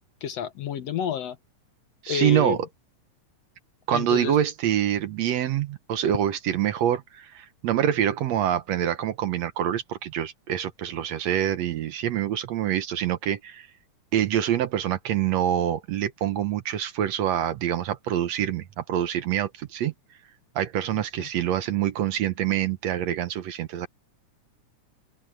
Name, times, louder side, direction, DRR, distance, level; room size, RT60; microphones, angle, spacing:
voice 1, 0.2-1.4 2.1-2.6 3.9-4.4 20.9-21.3, left 8 dB, 65° left, 1.9 m, -30 dB
voice 2, 2.0-2.6 3.9-13.7 14.1-19.9 20.6-23.9, right 10 dB, 65° right, 2.0 m, -26 dB
open air
omnidirectional pair, 3.5 m